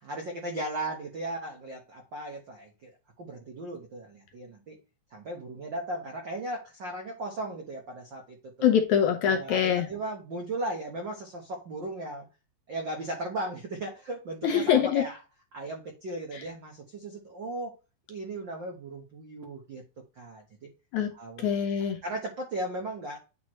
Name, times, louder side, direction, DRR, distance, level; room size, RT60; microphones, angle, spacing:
voice 1, 0.0-2.9 3.2-4.8 5.1-8.8 9.2-12.3 12.7-15.2 15.5-17.7 18.1-19.8 20.2-20.7 21.1-21.5 22.0-23.2, right 1 dB, 85° right, 1.0 m, -37 dB
voice 2, 8.6-9.8 14.4-15.0 20.9-21.1 21.4-22.0, left 8 dB, 75° left, 1.8 m, -24 dB
9.3 x 4.4 x 3.1 m
omnidirectional pair, 4.1 m